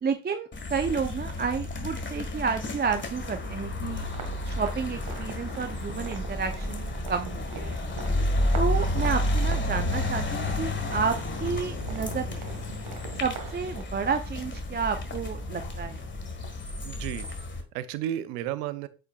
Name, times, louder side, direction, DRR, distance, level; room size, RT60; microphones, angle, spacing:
voice 1, 0.0-4.0 4.4-7.8 8.5-12.4 13.2-16.0, right 5 dB, 20° right, 7 dB, 0.6 m, -31 dB
sound 1, 0.5-17.6, left 1 dB, 25° left, 1.6 m, -31 dB
sound 2, 4.0-13.8, right 5 dB, 50° right, 1.8 m, -43 dB
voice 2, 16.8-18.9, right 12 dB, 85° right, 14 dB, 0.7 m, -34 dB
8.1 x 5.8 x 2.3 m, 0.33 s
supercardioid pair, 75°, 46 cm